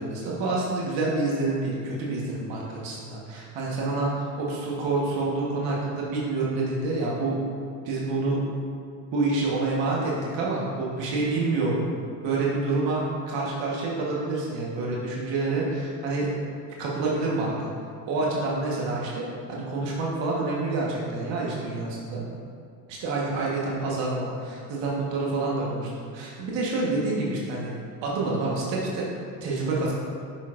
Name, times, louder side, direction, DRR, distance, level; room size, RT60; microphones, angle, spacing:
voice 1, 0.0-7.4 7.8-8.4 9.1-11.7 12.2-16.3 16.8-17.7 18.1-22.2 22.9-27.7 28.0-29.1 29.4-29.9, right 3 dB, 70° right, -4 dB, 1.4 m, -27 dB
8.7 x 6.4 x 2.6 m, 2.3 s
supercardioid pair, 90°, 45 cm